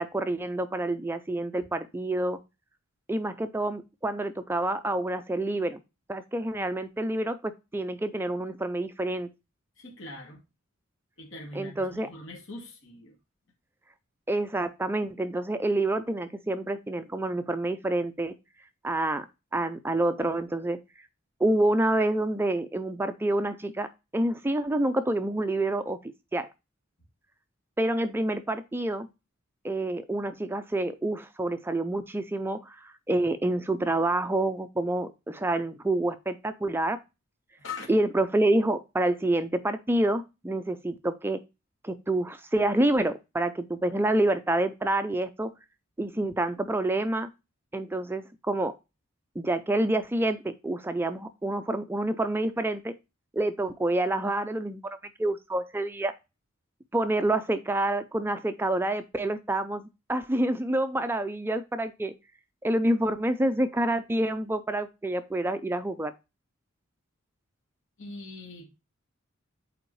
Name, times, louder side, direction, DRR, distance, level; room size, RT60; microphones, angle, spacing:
voice 1, 0.0-2.4 3.1-5.8 6.1-9.3 11.5-12.1 14.3-18.3 18.8-19.3 19.5-20.8 21.4-26.0 26.3-26.5 27.8-29.1 29.6-37.0 37.9-41.4 41.8-45.5 46.0-47.3 47.7-48.7 49.4-53.0 53.3-56.1 56.9-62.1 62.6-66.1, right 1 dB, 10° right, 0.4 m, -28 dB
voice 2, 9.8-10.4 11.2-13.2 37.6-37.9 68.0-68.7, left 3 dB, 65° left, 2.1 m, -42 dB
7.7 x 4.5 x 3.1 m
head